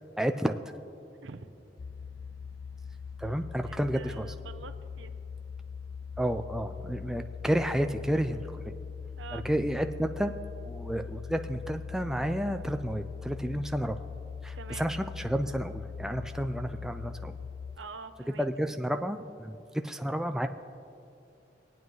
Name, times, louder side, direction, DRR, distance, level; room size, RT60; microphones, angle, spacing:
voice 1, 0.2-0.6 3.2-4.3 6.2-8.6 9.3-10.3 10.6-14.0 14.4-17.3 18.4-20.5, equal, 5° right, 6 dB, 0.3 m, -31 dB
sound 1, 1.8-17.8, left 6 dB, 90° left, 0.5 m, -41 dB
voice 2, 3.6-5.1 9.2-9.5 14.5-14.8 17.8-18.5, right 5 dB, 85° right, 9 dB, 0.7 m, -45 dB
25.5 x 9.2 x 3.1 m, 2.6 s
head